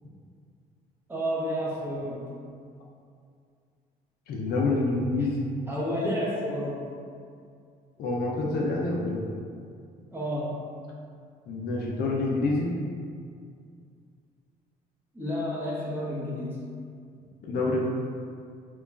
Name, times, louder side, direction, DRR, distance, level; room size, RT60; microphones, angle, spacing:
voice 1, 1.1-2.2 5.7-6.8 10.1-10.5 15.1-16.6, equal, 15° right, -7 dB, 0.7 m, -30 dB
voice 2, 4.3-5.5 8.0-9.3 11.5-12.7 17.4-17.8, left 2 dB, 65° left, -2 dB, 0.5 m, -27 dB
2.9 x 2.2 x 2.4 m, 2.3 s
cardioid pair, 110°, 17 cm